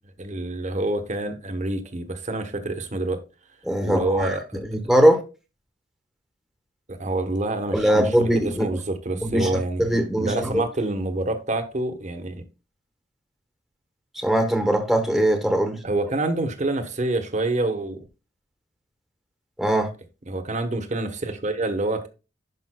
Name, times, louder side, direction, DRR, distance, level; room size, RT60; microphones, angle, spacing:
voice 1, 0.2-3.2 3.8-4.6 6.9-9.8 10.2-12.4 15.8-18.1 20.3-22.1, right 2 dB, 40° right, 1.1 m, -27 dB
voice 2, 3.6-5.2 7.7-8.7 9.2-10.6 14.2-15.8 19.6-19.9, right 1 dB, ahead, 1.1 m, -21 dB
11.0 x 5.1 x 2.2 m
head